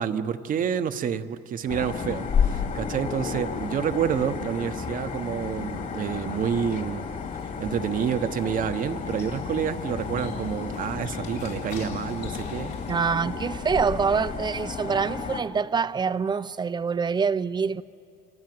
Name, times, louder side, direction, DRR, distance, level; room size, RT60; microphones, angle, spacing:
voice 1, 0.0-7.1 7.6-12.8 13.2-13.3, right 8 dB, 55° right, 1.2 m, -28 dB
sound 1, 1.7-15.4, left 6 dB, 50° left, 2.6 m, -32 dB
sound 2, 7.4-12.9, left 6 dB, 75° left, 4.0 m, -44 dB
voice 2, 12.9-17.8, right 5 dB, 25° right, 0.7 m, -25 dB
28.0 x 27.0 x 7.9 m
cardioid pair, 110°, 17 cm